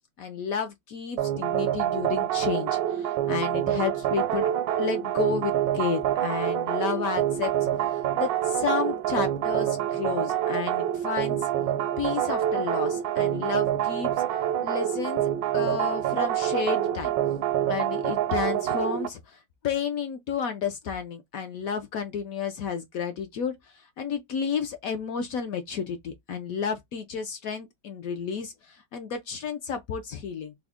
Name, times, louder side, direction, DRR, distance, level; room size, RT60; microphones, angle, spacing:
voice 1, 0.2-4.5 4.8-7.7 8.1-11.5 12.0-14.1 14.6-15.2 15.5-17.1 17.7-19.4 19.6-23.6 24.0-30.5, left 6 dB, 70° left, 0.8 m, -31 dB
sound 1, 1.2-19.1, right 11 dB, 85° right, 1.3 m, -26 dB
3.6 x 2.1 x 3.4 m
omnidirectional pair, 1.9 m